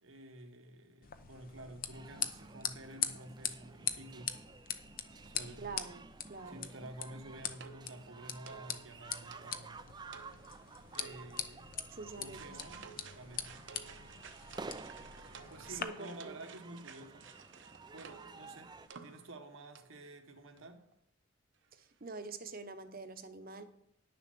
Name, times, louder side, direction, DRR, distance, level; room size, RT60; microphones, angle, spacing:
voice 1, 0.0-4.3 5.2-5.6 6.5-9.8 10.9-12.8 13.1-13.6 15.5-17.3 17.9-18.7 19.0-20.8, right 1 dB, 80° right, 4 dB, 1.3 m, -50 dB
sound 1, 1.0-15.8, left 9 dB, 45° left, 0.8 m, -43 dB
sound 2, 1.9-18.9, right 4 dB, 20° right, 0.4 m, -52 dB
voice 2, 5.6-6.0 6.3-6.7 11.9-12.4 15.7-16.4 21.7-23.6, right 4 dB, 45° right, 8 dB, 1.0 m, -45 dB
sound 3, 7.0-19.5 19.7-20.0 20.6-20.7 20.9-21.0, right 6 dB, 65° right, 0.9 m, -55 dB
10.5 x 7.0 x 6.2 m, 0.73 s
head